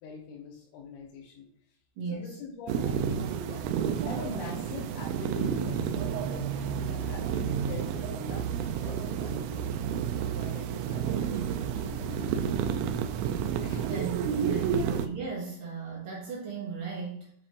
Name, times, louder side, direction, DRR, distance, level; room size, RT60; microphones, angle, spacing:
voice 1, 0.0-1.5 2.1-3.7 4.0-9.6 10.3-11.2 11.6-12.5 13.6-13.9 14.7-14.8, left 5 dB, 85° left, -3 dB, 3.7 m, -44 dB
voice 2, 2.0-2.4 13.8-17.3, right 5 dB, 70° right, -3 dB, 2.1 m, -36 dB
sound 1, 2.7-15.1, right 7 dB, 90° right, 2.6 m, -30 dB
8.4 x 5.1 x 2.5 m, 0.66 s
omnidirectional pair, 5.8 m